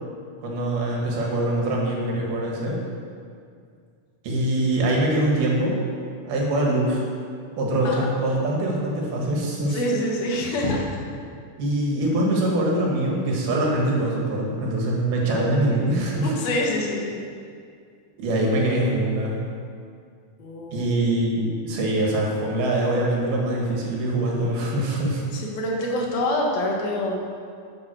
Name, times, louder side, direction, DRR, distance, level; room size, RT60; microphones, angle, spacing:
voice 1, 0.4-2.8 4.2-5.8 6.3-7.0 7.6-9.8 11.6-16.3 18.2-19.4 20.7-25.2, right 1 dB, 85° right, -2 dB, 3.8 m, -23 dB
voice 2, 9.7-10.9 16.2-17.2 20.4-20.9 25.3-27.2, left 1 dB, 80° left, -1 dB, 3.2 m, -26 dB
11.0 x 7.4 x 6.2 m, 2.2 s
omnidirectional pair, 4.3 m